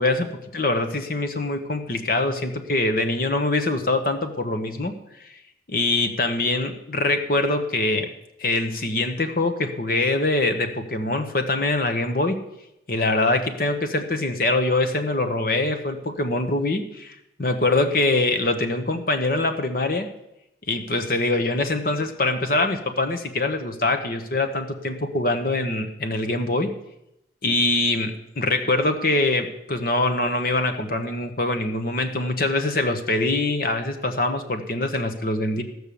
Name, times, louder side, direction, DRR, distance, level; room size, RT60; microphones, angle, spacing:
voice 1, 0.0-4.9 5.2-5.3 5.7-8.1 8.4-12.4 12.9-20.1 20.7-26.7 27.4-35.6, left 2 dB, 50° left, 7 dB, 1.1 m, -24 dB
15.0 x 6.3 x 7.0 m, 0.85 s
head